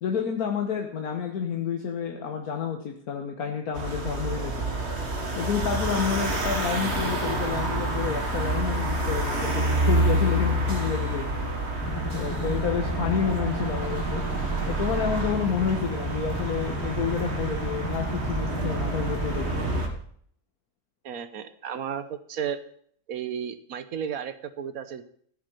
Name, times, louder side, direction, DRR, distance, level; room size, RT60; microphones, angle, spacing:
voice 1, 0.0-4.5 5.3-11.5 12.1-14.2 14.7-19.4, left 7 dB, 80° left, 2 dB, 1.7 m, -29 dB
sound 1, 3.7-19.9, right 2 dB, 45° right, 1.9 m, -28 dB
sound 2, 11.8-19.8, left 1 dB, 20° left, 1.3 m, -34 dB
voice 2, 21.0-22.6 23.1-25.0, right 8 dB, 70° right, 11 dB, 1.4 m, -33 dB
15.0 x 7.1 x 6.9 m, 0.62 s
omnidirectional pair, 1.6 m